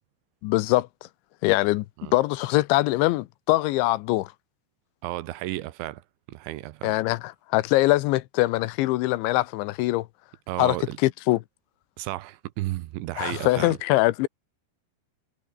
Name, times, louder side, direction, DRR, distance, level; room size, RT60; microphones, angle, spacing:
voice 1, 0.4-0.9 1.4-4.3 6.8-10.1 10.6-10.8 11.0-11.4 13.2-14.3, left 18 dB, 80° left, 3.1 m, -23 dB
voice 2, 5.0-6.9 10.5-11.0 12.0-13.8, right 16 dB, 80° right, 3.3 m, -33 dB
omnidirectional pair, 5.4 m